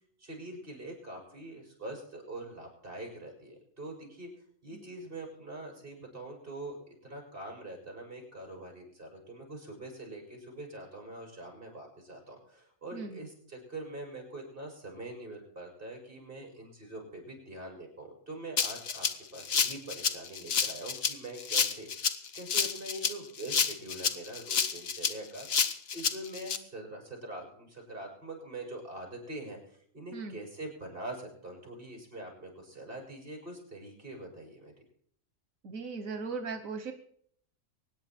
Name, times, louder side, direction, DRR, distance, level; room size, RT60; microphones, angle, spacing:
voice 1, 0.2-4.3 4.6-19.1 19.3-21.9 22.3-25.5 25.9-29.6 29.9-34.7, right 2 dB, 40° right, 1 dB, 5.9 m, -44 dB
Rattle (instrument), 18.6-26.6, left 6 dB, 50° left, 1.1 m, -30 dB
voice 2, 35.6-36.9, right 4 dB, 90° right, 8 dB, 1.5 m, -38 dB
24.0 x 9.4 x 4.4 m, 0.64 s
omnidirectional pair, 1.4 m